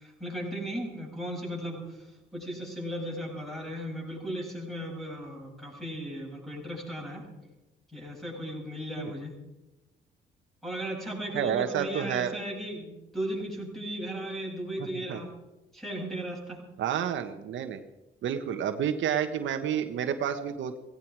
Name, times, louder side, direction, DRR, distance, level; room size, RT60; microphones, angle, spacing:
voice 1, 0.0-7.3 7.9-9.3 10.6-15.3 15.7-16.6, right 1 dB, ahead, -1 dB, 7.7 m, -36 dB
voice 2, 11.3-12.3 14.8-15.2 16.8-17.8 18.2-20.8, right 9 dB, 75° right, 7 dB, 1.3 m, -30 dB
17.0 x 16.5 x 4.8 m, 1.0 s
cardioid pair, 90°, 20 cm